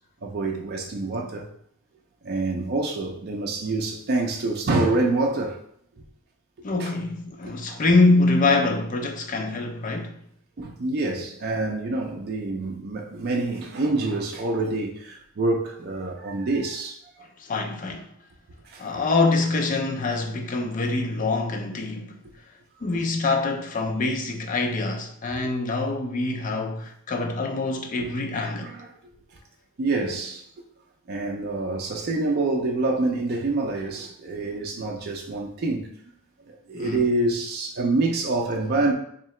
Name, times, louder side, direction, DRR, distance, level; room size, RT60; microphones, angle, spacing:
voice 1, 0.2-1.5 2.2-5.6 6.8-6.9 7.7-7.8 10.6-17.0 18.6-18.8 25.4-25.5 28.0-28.1 28.4-28.9 29.8-30.4 31.1-35.9 36.5-38.9, right 2 dB, 45° right, 0.4 m, -26 dB
voice 2, 6.6-10.1 17.4-18.1 18.8-22.2 22.8-28.7 36.7-37.0, left 3 dB, 35° left, 0.4 m, -24 dB
3.7 x 2.8 x 3.1 m
head